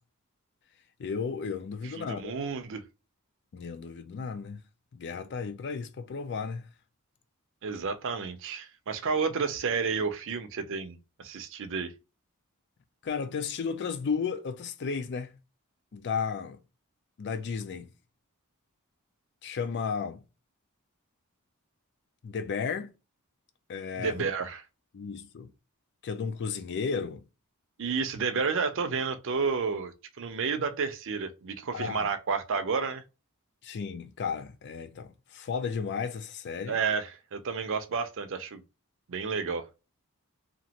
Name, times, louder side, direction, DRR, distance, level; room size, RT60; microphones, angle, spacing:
voice 1, 1.0-2.3 3.5-4.6 4.9-6.7 13.0-15.4 15.9-16.6 17.2-17.9 19.4-20.2 22.2-22.9 23.7-24.3 24.9-25.5 26.0-27.2 31.7-32.1 33.6-36.8, left 5 dB, 50° left, 0.4 m, -34 dB
voice 2, 1.8-2.8 7.6-11.9 24.0-24.6 27.8-33.0 36.7-38.6 39.1-39.7, right 5 dB, 60° right, 0.5 m, -31 dB
2.9 x 2.5 x 2.8 m
head